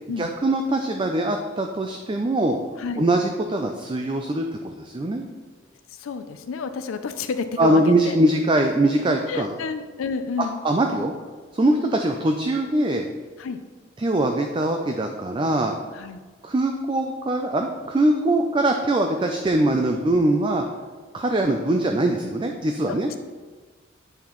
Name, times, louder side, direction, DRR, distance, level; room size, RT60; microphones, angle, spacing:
voice 1, 0.2-2.6 3.0-5.3 7.6-9.6 10.6-11.1 11.5-13.1 14.0-15.7 16.4-20.6 21.1-23.1, right 1 dB, 25° right, 4 dB, 0.3 m, -22 dB
voice 2, 5.9-8.2 9.3-10.6 13.4-13.6 15.9-16.2 22.9-23.2, left 5 dB, 90° left, 9 dB, 0.4 m, -30 dB
8.6 x 5.5 x 3.0 m, 1.4 s
head